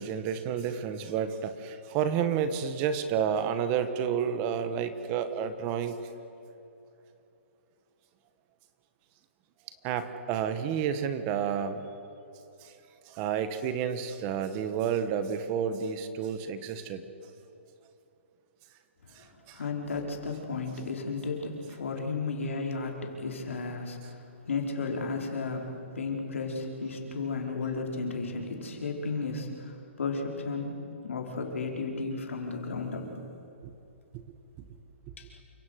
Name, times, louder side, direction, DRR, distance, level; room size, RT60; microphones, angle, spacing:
voice 1, 0.0-6.0 9.8-11.8 12.6-12.7 13.1-17.1 19.2-19.6 33.6-33.7 34.1-34.2, right 8 dB, 25° right, 10 dB, 1.3 m, -30 dB
voice 2, 19.1-33.2 35.2-35.3, left 4 dB, 85° left, 1 dB, 4.6 m, -34 dB
28.5 x 17.0 x 6.5 m, 2.9 s
hypercardioid pair, 160°, 7 cm